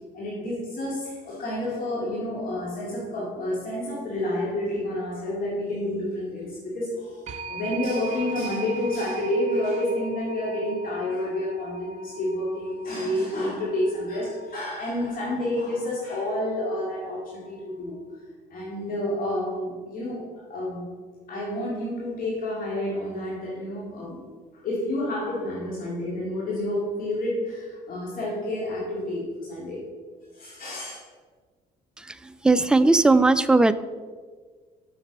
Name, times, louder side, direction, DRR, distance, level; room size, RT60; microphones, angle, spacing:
voice 1, 0.1-7.2 7.5-18.0 18.5-20.9 21.3-24.2 24.5-29.8 30.3-31.0, left 1 dB, 55° left, -6 dB, 2.3 m, -29 dB
sound 1, 7.3-17.9, right 3 dB, 45° right, 0.7 m, -41 dB
voice 2, 32.4-33.7, right 3 dB, 5° right, 12 dB, 0.3 m, -17 dB
7.2 x 6.1 x 5.3 m, 1.5 s
cardioid pair, 110°, 17 cm